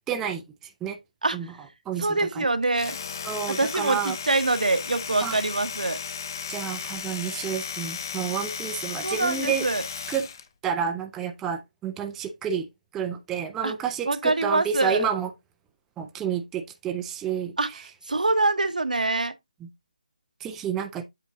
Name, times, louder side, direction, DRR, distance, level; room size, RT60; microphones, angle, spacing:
voice 1, 0.1-1.0 1.3-1.5 1.9-2.5 3.2-4.2 5.2-5.4 6.5-9.7 10.1-10.3 10.6-12.7 12.9-15.3 16.0-17.9 19.6-19.7 20.4-21.0, right 7 dB, 5° right, 0.3 m, -30 dB
voice 2, 2.0-3.0 3.5-6.0 9.0-9.8 13.6-13.7 14.1-15.0 17.6-17.7 18.1-19.3, right 2 dB, 85° right, 1.1 m, -24 dB
Domestic sounds home sounds, 2.6-10.5, left 6 dB, 30° left, 0.7 m, -35 dB
8.1 x 4.0 x 3.6 m
figure-of-eight pair, 165°, 4 cm